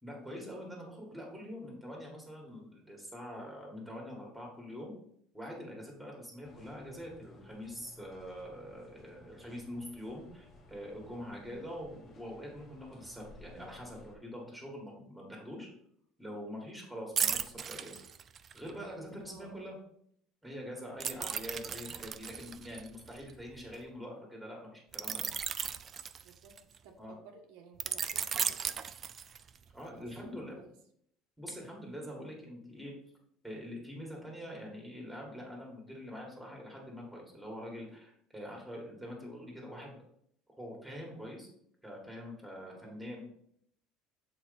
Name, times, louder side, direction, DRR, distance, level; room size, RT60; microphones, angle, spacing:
voice 1, 0.0-4.9 5.3-15.7 16.2-18.0 18.5-19.8 20.4-25.2 27.0-27.2 29.7-30.6 31.4-32.9 33.4-40.0 40.6-41.5 41.8-43.3, equal, ahead, -1 dB, 1.9 m, -44 dB
sound 1, 6.4-14.2, left 2 dB, 25° left, 0.9 m, -57 dB
sound 2, 17.2-18.7 21.0-23.7 24.9-26.8 27.8-29.6 30.1-30.3, right 7 dB, 30° right, 0.3 m, -36 dB
voice 2, 19.3-19.7 21.1-21.4 26.2-26.6 26.8-28.8 30.2-30.7 42.6-43.0, right 5 dB, 85° right, 2 dB, 1.4 m, -55 dB
7.7 x 4.3 x 4.2 m, 0.69 s
cardioid pair, 165°, 0 cm